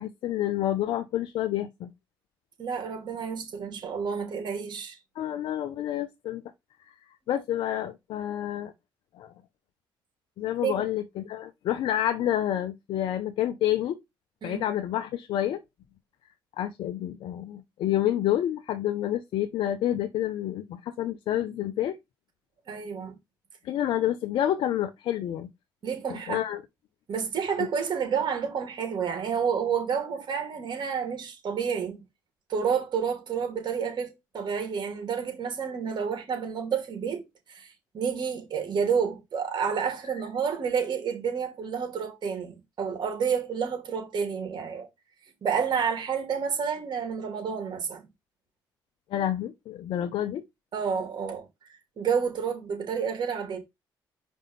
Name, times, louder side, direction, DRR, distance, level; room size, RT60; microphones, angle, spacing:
voice 1, 0.0-1.9 5.2-6.4 6.9-7.0 7.3-8.7 9.2-9.3 10.4-14.0 14.4-15.6 16.6-22.0 23.6-25.5 26.1-26.6 49.1-50.4, left 12 dB, 70° left, 0.7 m, -28 dB
voice 2, 2.6-5.0 10.6-10.9 14.4-14.6 22.7-23.1 25.8-26.4 27.1-32.0 32.5-44.9 45.4-48.1 50.7-51.5 52.0-53.6, right 6 dB, 55° right, 3.1 m, -30 dB
5.2 x 3.6 x 5.7 m
supercardioid pair, 60°, 9 cm